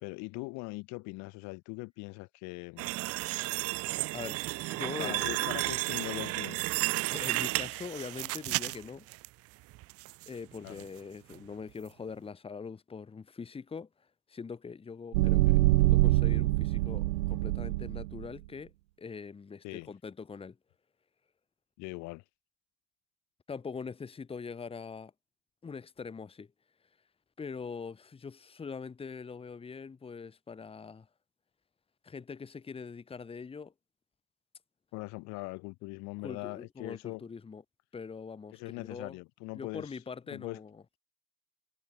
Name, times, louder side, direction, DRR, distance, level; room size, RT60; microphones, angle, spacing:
voice 1, 0.0-2.9 5.0-6.6 10.6-10.8 19.6-19.9 21.8-22.2 34.9-37.2 38.5-39.9 40.3-40.6, left 26 dB, 50° left, 2.4 m, -41 dB
sound 1, 2.8-9.3 9.7-10.3 10.7-10.9 11.3-11.4, right 19 dB, 40° right, 1.2 m, -33 dB
voice 2, 4.1-5.3 7.1-9.1 10.3-18.7 19.0-20.6 23.5-25.1 25.6-26.5 27.4-31.1 32.0-33.7 36.2-37.6 37.9-39.2 39.5-40.8, left 5 dB, 15° left, 2.9 m, -43 dB
sound 2, 15.1-18.3, right 19 dB, 70° right, 0.6 m, -25 dB
hypercardioid pair, 110°, 36 cm